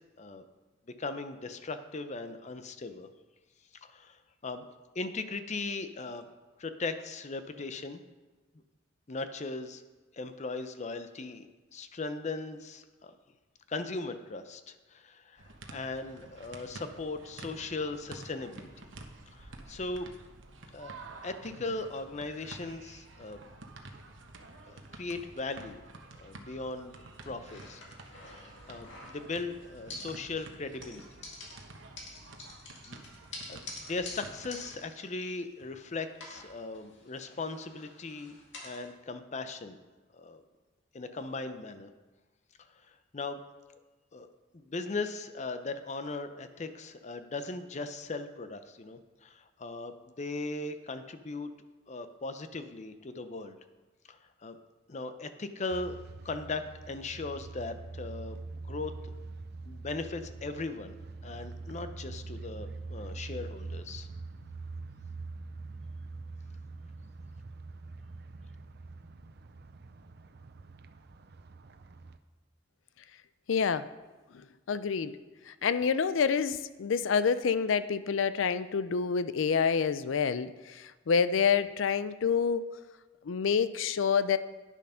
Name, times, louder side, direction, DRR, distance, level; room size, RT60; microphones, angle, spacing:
voice 1, 1.0-3.1 3.8-4.6 4.9-8.0 9.1-9.8 10.1-11.5 11.7-13.1 13.7-18.7 19.3-20.1 20.7-20.9 21.2-23.4 24.7-25.8 26.2-27.0 27.2-27.8 28.7-31.0 32.9-33.0 33.5-38.4 38.6-39.8 40.1-40.4 40.9-41.9 43.1-43.4 44.1-44.3 44.5-51.5 51.9-53.6 54.1-54.6 54.9-56.0 56.2-58.9 59.7-60.9 61.2-64.1, left 3 dB, 35° left, 10 dB, 0.6 m, -38 dB
sound 1, 15.4-34.8, right 2 dB, 75° right, 1.0 m, -50 dB
sound 2, 27.5-29.5 29.9-30.5 30.8-35.8 36.1-38.9, left 2 dB, 65° left, 2.2 m, -48 dB
sound 3, 55.7-72.2, right 3 dB, 55° right, 0.5 m, -44 dB
voice 2, 73.5-73.9 74.3-75.2 75.5-82.6 83.2-84.4, left 6 dB, 85° left, 14 dB, 0.5 m, -28 dB
10.0 x 7.1 x 5.6 m, 1.2 s
head